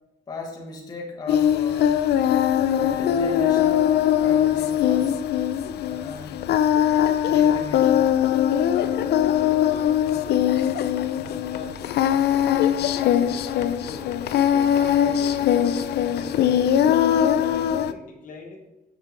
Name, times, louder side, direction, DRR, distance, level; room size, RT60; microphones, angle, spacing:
voice 1, 0.3-2.0 2.8-3.9 4.2-5.2 5.8-6.4 7.2-8.1, left 3 dB, 25° left, -1 dB, 1.0 m, -37 dB
Singing, 1.3-17.9, left 10 dB, 85° left, 0.4 m, -21 dB
voice 2, 8.7-12.0 12.5-16.7 17.1-18.6, left 3 dB, 55° left, 2 dB, 1.2 m, -42 dB
6.4 x 6.1 x 3.8 m, 0.99 s
cardioid pair, 160°, 17 cm